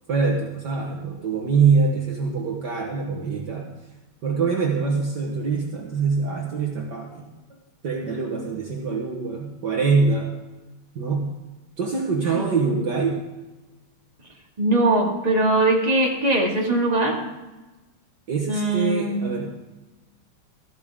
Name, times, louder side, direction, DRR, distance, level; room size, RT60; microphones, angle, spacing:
voice 1, 0.1-3.7 4.2-7.3 7.8-10.3 11.0-11.3 11.8-13.2 18.3-19.5, right 4 dB, 55° right, 0 dB, 1.7 m, -24 dB
voice 2, 14.6-17.1 18.5-19.2, right 2 dB, 20° right, -1 dB, 2.2 m, -21 dB
13.5 x 12.5 x 3.6 m, 1.1 s
omnidirectional pair, 2.4 m